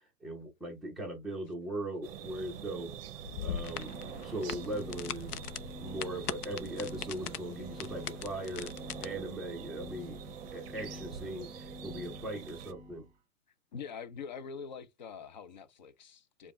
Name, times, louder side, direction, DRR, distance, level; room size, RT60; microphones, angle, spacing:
voice 1, 0.2-2.9 3.4-5.4 5.8-8.7 9.0-10.2 10.5-13.0, right 1 dB, ahead, 0.8 m, -39 dB
sound 1, 2.0-12.7, right 9 dB, 40° right, 0.8 m, -46 dB
sound 2, 3.2-9.1, left 9 dB, 75° left, 0.7 m, -41 dB
sound 3, 3.4-13.1, left 1 dB, 15° right, 1.5 m, -48 dB
voice 2, 13.7-16.5, left 6 dB, 30° left, 0.4 m, -44 dB
5.0 x 2.3 x 3.4 m
hypercardioid pair, 130°, 47 cm